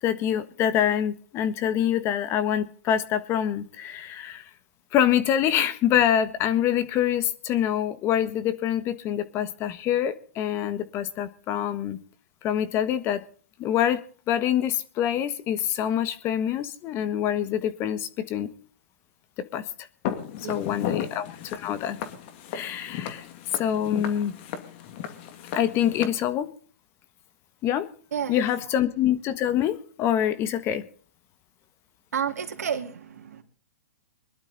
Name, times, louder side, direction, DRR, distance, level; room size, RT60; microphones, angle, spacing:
voice 1, 0.0-4.4 4.9-12.0 12.4-13.2 13.6-14.0 14.3-18.5 19.5-19.6 20.5-22.0 22.5-23.2 23.5-24.4 25.5-26.5 27.6-27.9 28.3-30.8, left 10 dB, 30° left, 1.4 m, -25 dB
Walk footsteps, 20.0-26.1, left 9 dB, 45° left, 2.3 m, -35 dB
voice 2, 20.4-21.0 28.1-28.4 32.1-33.4, right 8 dB, 80° right, 2.5 m, -31 dB
21.5 x 12.0 x 4.1 m
hypercardioid pair, 135°, 8 cm